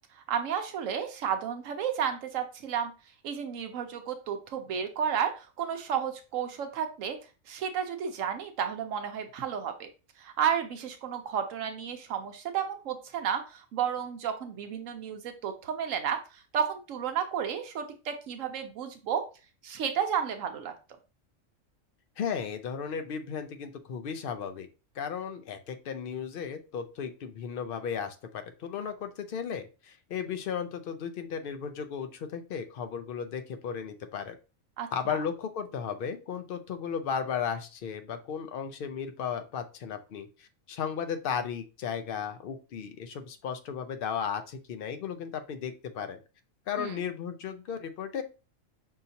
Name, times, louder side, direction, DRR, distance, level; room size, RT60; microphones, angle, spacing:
voice 1, 0.1-2.9 3.2-7.2 7.5-9.9 10.2-19.2 19.6-20.7 34.8-35.2 46.8-47.0, right 8 dB, 75° right, 6 dB, 1.0 m, -32 dB
voice 2, 22.2-24.7 25.0-34.3 34.9-46.2 46.7-48.2, left 7 dB, 65° left, 9 dB, 0.6 m, -35 dB
5.6 x 2.7 x 2.7 m, 0.32 s
omnidirectional pair, 1.4 m